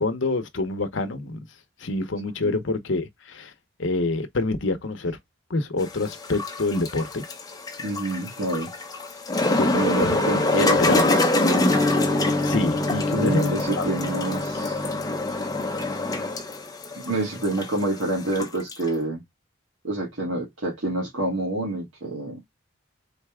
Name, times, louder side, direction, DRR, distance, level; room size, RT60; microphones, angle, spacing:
voice 1, 0.0-1.5 1.8-3.5 3.8-5.2 5.5-7.2 9.6-10.2 10.6-11.1 12.4-13.9, left 2 dB, 65° left, 0.8 m, -26 dB
sound 1, 5.8-18.9, left 2 dB, 20° left, 0.6 m, -25 dB
voice 2, 7.8-8.7 9.7-11.2 11.5-11.7 13.1-14.8 16.9-19.2 19.8-22.4, right 2 dB, 75° right, 1.8 m, -27 dB
sound 2, 11.7-16.0, left 2 dB, 20° right, 1.0 m, -30 dB
4.0 x 3.3 x 3.5 m
head